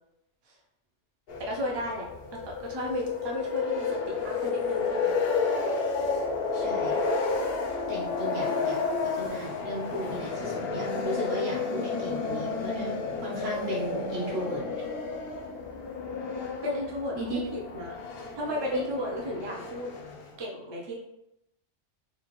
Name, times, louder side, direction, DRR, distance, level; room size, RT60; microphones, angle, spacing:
sound 1, 1.3-20.4, left 4 dB, 60° left, 0.8 m, -31 dB
voice 1, 1.4-5.1 16.6-18.0 18.4-19.9 20.4-20.9, left 1 dB, 35° right, -1 dB, 0.4 m, -34 dB
voice 2, 6.5-7.0 7.9-14.6 17.1-17.4 18.7-18.8, right 1 dB, 55° right, -5 dB, 1.4 m, -36 dB
3.7 x 2.4 x 3.0 m, 0.85 s
omnidirectional pair, 1.2 m